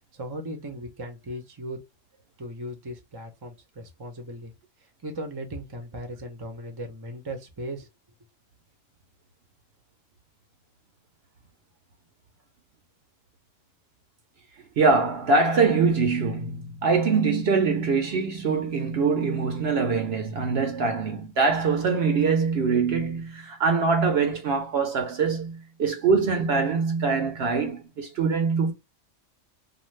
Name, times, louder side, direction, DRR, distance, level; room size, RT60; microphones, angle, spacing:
voice 1, 0.1-1.8 2.4-4.5 5.0-7.9, right 1 dB, 25° right, 0.6 m, -37 dB
voice 2, 14.8-28.7, right 4 dB, 60° right, 0.8 m, -23 dB
2.5 x 2.3 x 3.1 m
omnidirectional pair, 1.3 m